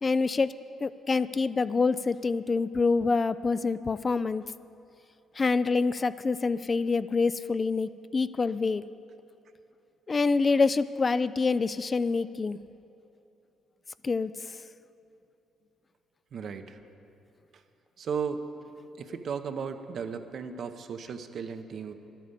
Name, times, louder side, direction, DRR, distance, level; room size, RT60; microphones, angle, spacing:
voice 1, 0.0-0.5 0.8-4.4 5.4-8.8 10.1-12.6 14.0-14.3, left 4 dB, 30° left, 15 dB, 0.3 m, -26 dB
voice 2, 16.3-16.8 18.0-18.4 19.0-21.9, right 6 dB, 60° right, 8 dB, 0.8 m, -35 dB
11.0 x 9.1 x 8.1 m, 2.9 s
cardioid pair, 90°, 0 cm